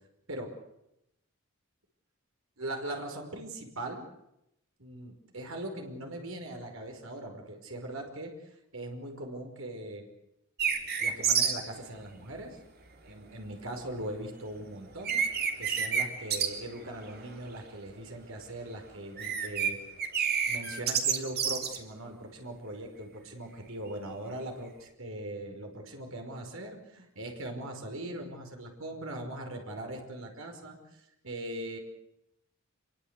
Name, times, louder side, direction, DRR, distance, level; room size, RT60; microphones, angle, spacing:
voice 1, 2.6-4.1 4.8-8.3 8.7-10.1 11.0-12.6 13.0-15.2 15.6-19.8 20.5-30.8 31.2-31.8, right 1 dB, 70° right, 3 dB, 5.3 m, -40 dB
sound 1, 10.6-11.5 14.6-14.7 15.0-16.0 16.3-16.5 16.8-17.3 17.6-17.9 19.0-19.7 20.0-21.8, right 7 dB, 45° right, 3.3 m, -28 dB
26.5 x 23.0 x 8.3 m, 0.83 s
head